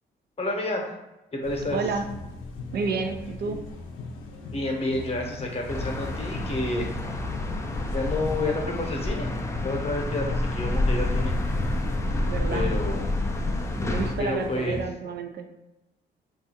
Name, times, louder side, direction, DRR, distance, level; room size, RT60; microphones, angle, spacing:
voice 1, 0.4-0.8 1.3-1.8 4.4-6.9 7.8-9.3 9.6-11.3 12.5-13.1 14.2-14.8, left 2 dB, 30° left, 0 dB, 0.8 m, -29 dB
sound 1, 1.4-14.9, left 3 dB, 85° left, 0.5 m, -38 dB
voice 2, 1.7-2.1 2.7-3.7 12.1-12.7 13.8-15.5, right 5 dB, 55° right, 5 dB, 0.4 m, -30 dB
sound 2, 5.7-14.1, left 1 dB, 15° left, 0.4 m, -28 dB
2.6 x 2.4 x 4.2 m, 0.95 s
cardioid pair, 90°, 20 cm